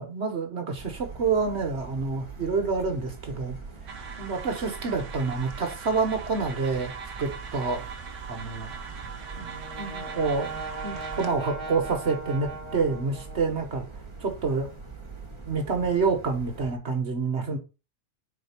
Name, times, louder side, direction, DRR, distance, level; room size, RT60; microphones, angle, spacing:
voice 1, 0.0-3.5 4.2-6.9 7.2-7.8 8.3-8.7 9.4-13.8 14.2-14.7 15.5-17.6, right 4 dB, 60° right, 1.6 m, -28 dB
sound 1, 0.8-16.8, right 4 dB, 25° right, 1.5 m, -43 dB
sound 2, 3.9-11.3, right 6 dB, 75° right, 1.2 m, -41 dB
Brass instrument, 9.1-13.8, right 3 dB, 25° left, 2.7 m, -39 dB
4.6 x 4.4 x 5.9 m
omnidirectional pair, 1.3 m